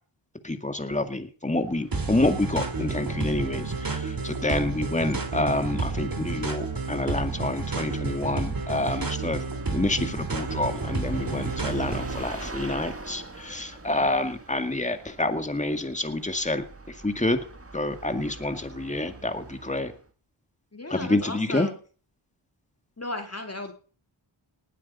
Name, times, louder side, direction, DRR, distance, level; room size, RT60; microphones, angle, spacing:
voice 1, 0.4-9.5 9.7-17.4 17.7-19.9 20.9-21.7, left 2 dB, 15° left, 8 dB, 2.1 m, -28 dB
Bus, 1.5-20.1, right 2 dB, 30° right, 2.0 m, -43 dB
sound 1, 1.9-12.2, right 3 dB, 45° right, 2.9 m, -31 dB
voice 2, 20.7-21.8 23.0-23.7, left 2 dB, 30° left, 4 dB, 2.8 m, -36 dB
20.0 x 7.4 x 5.6 m, 0.40 s
cardioid pair, 50°, 47 cm